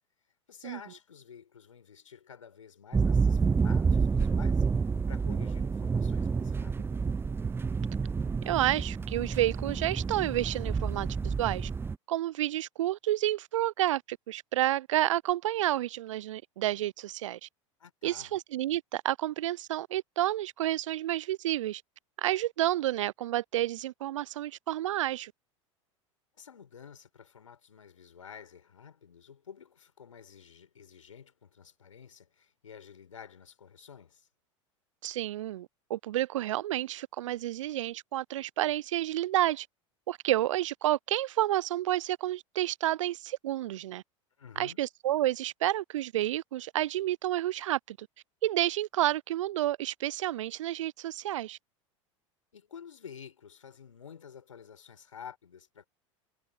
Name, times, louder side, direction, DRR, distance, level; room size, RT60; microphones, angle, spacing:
voice 1, 0.5-4.7 5.1-7.0 17.8-18.3 26.4-34.3 44.4-44.8 52.5-55.9, left 7 dB, 80° left, 5.9 m, -50 dB
sound 1, 2.9-11.9, right 5 dB, 15° right, 0.6 m, -29 dB
voice 2, 8.5-11.7 12.1-17.5 18.0-21.8 22.2-25.3 35.0-39.7 40.1-44.0 44.6-48.1 48.4-51.6, right 14 dB, 70° right, 0.4 m, -30 dB
figure-of-eight pair, 85°, 16 cm